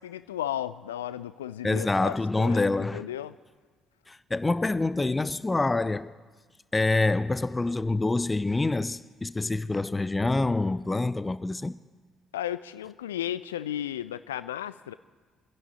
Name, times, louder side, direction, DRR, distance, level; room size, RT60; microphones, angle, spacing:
voice 1, 0.0-3.4 12.3-14.9, left 11 dB, 75° left, 0.3 m, -34 dB
voice 2, 1.6-3.0 4.1-6.1 6.7-11.7, left 2 dB, 20° left, 0.5 m, -26 dB
26.0 x 11.0 x 4.3 m
figure-of-eight pair, 50°, 0 cm